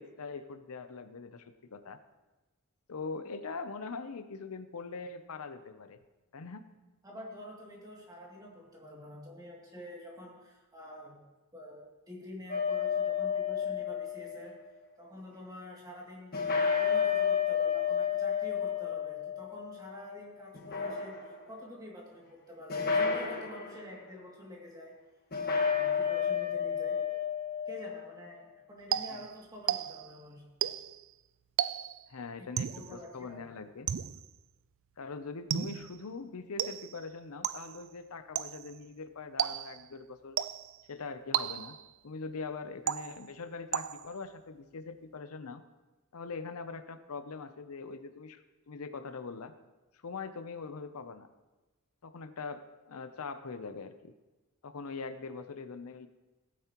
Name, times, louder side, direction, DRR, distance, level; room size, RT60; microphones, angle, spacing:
voice 1, 0.0-2.0 2.9-6.0 6.3-6.6 29.1-29.2 32.1-33.9 35.0-40.4 40.9-41.8 42.0-45.6 46.1-49.5 50.0-51.3 52.0-54.1 54.6-56.1, left 4 dB, 75° left, 10 dB, 0.6 m, -42 dB
voice 2, 7.0-11.2 11.5-14.5 15.0-16.3 16.8-24.9 25.6-27.0 27.7-30.4 32.4-32.5 32.7-33.4, left 1 dB, 15° right, -3 dB, 2.4 m, -47 dB
sound 1, 12.5-14.5 16.3-20.1 20.5-21.5 22.7-23.8 25.3-28.0, left 7 dB, 45° left, 1.4 m, -31 dB
sound 2, 28.9-30.2 30.6-31.0 31.6-32.1 32.6-33.0 33.9-34.3 35.5-36.0 36.6-37.0 37.4-37.8 38.3-38.7 39.4-39.9 40.4-40.8 41.3-41.9 42.9-43.4 43.7-44.2, right 10 dB, 60° right, 0.4 m, -34 dB
16.5 x 9.4 x 3.0 m, 1.1 s
head